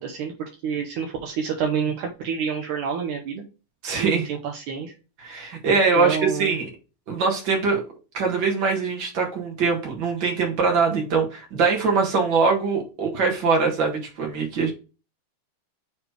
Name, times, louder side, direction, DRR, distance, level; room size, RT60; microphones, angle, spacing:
voice 1, 0.0-3.4 4.0-4.9 5.7-6.5, right 7 dB, 80° right, 1.8 m, -28 dB
voice 2, 3.8-4.3 5.2-6.7 7.1-7.8 8.1-14.7, right 4 dB, 60° right, 1.2 m, -22 dB
7.0 x 3.2 x 4.8 m
omnidirectional pair, 4.5 m